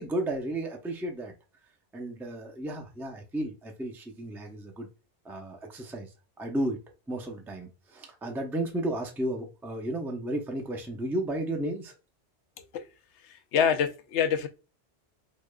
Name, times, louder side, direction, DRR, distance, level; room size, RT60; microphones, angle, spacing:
voice 1, 0.0-1.3 1.9-4.9 5.2-6.8 7.1-11.9, right 1 dB, 5° right, 0.5 m, -33 dB
voice 2, 13.5-14.5, left 7 dB, 90° left, 0.9 m, -25 dB
5.0 x 2.4 x 2.2 m
omnidirectional pair, 1.1 m